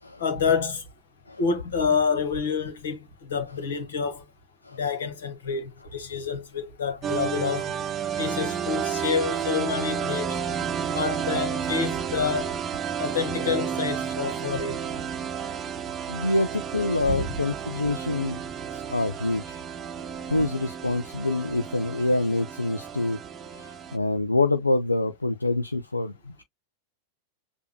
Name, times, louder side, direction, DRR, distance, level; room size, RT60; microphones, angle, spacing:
voice 1, 0.2-0.8 1.4-4.2 4.8-7.7 8.2-10.4 10.9-12.5 13.0-14.8 17.1-17.3 20.3-20.4, left 5 dB, 65° left, 1.7 m, -28 dB
sound 1, 7.0-24.0, right 8 dB, 25° right, 0.8 m, -31 dB
voice 2, 16.1-18.4 18.7-19.6 20.3-23.2 23.5-26.4, left 2 dB, 80° left, 0.5 m, -26 dB
6.7 x 2.7 x 2.2 m
figure-of-eight pair, 90°, 0 cm